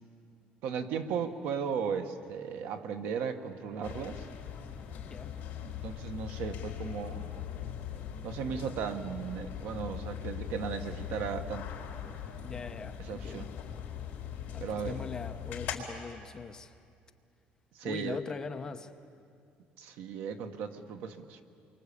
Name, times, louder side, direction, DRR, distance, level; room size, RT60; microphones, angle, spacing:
voice 1, 0.6-4.3 5.6-7.3 8.2-11.7 13.1-13.5 14.6-15.0 17.7-18.2 19.8-21.4, right 6 dB, 70° right, 7 dB, 1.6 m, -36 dB
sound 1, 3.8-15.8, left 9 dB, 55° left, 4.2 m, -40 dB
voice 2, 5.0-5.4 12.4-13.6 14.5-16.8 17.8-18.9, left 5 dB, 20° left, 7 dB, 0.9 m, -41 dB
29.0 x 24.0 x 8.6 m, 2.4 s
cardioid pair, 175°, 3 cm